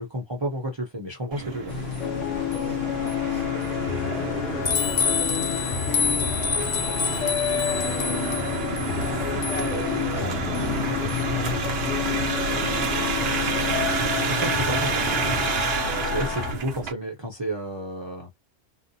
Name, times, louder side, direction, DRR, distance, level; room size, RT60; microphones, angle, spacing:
voice 1, 0.0-1.7 10.9-11.0 14.3-15.3 16.0-18.3, equal, 25° right, 0.7 m, -31 dB
sound 1, 1.3-16.9, right 5 dB, 65° right, 0.8 m, -30 dB
sound 2, 1.7-15.5, left 5 dB, 55° left, 0.8 m, -30 dB
sound 3, 2.0-16.5, left 9 dB, 85° left, 0.9 m, -30 dB
voice 2, 2.1-13.5 15.5-15.7, equal, 5° left, 0.8 m, -43 dB
2.6 x 2.1 x 2.6 m
omnidirectional pair, 1.2 m